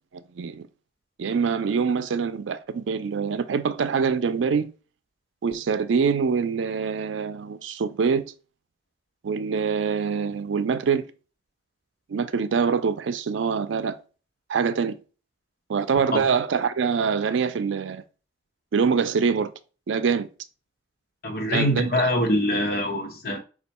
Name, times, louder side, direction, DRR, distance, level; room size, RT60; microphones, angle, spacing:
voice 1, 0.4-0.7 1.2-4.7 5.4-8.2 9.2-11.1 12.1-14.0 14.5-14.9 15.7-18.0 18.7-19.5 19.9-20.3 21.5-21.9, right 6 dB, 90° right, 0.4 m, -24 dB
voice 2, 21.2-23.4, left 1 dB, 55° left, 0.9 m, -24 dB
4.4 x 2.4 x 4.1 m
head